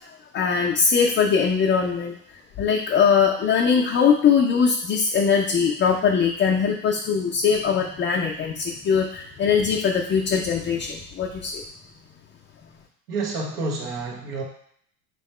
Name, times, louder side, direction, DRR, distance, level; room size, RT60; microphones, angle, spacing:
voice 1, 0.0-2.2 2.6-11.6, left 6 dB, 25° left, -1 dB, 0.5 m, -21 dB
voice 2, 13.1-14.4, right 3 dB, 75° right, 0 dB, 1.3 m, -29 dB
3.4 x 3.0 x 4.2 m, 0.66 s
hypercardioid pair, 75°, 46 cm